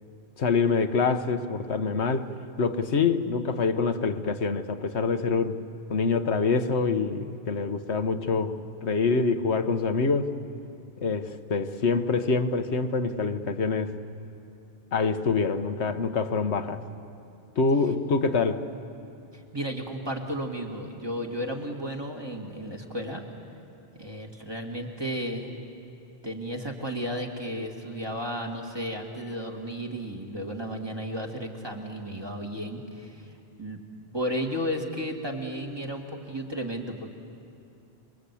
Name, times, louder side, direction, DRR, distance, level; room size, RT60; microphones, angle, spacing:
voice 1, 0.4-2.3 2.6-5.6 5.9-10.3 11.0-13.9 14.9-16.8 17.6-18.6, left 4 dB, 75° left, 7 dB, 1.4 m, -25 dB
voice 2, 19.3-23.2 24.0-25.5 26.2-33.3 33.6-33.8 34.1-37.1, equal, 20° right, 1 dB, 2.3 m, -33 dB
28.5 x 22.0 x 8.5 m, 2.6 s
omnidirectional pair, 1.1 m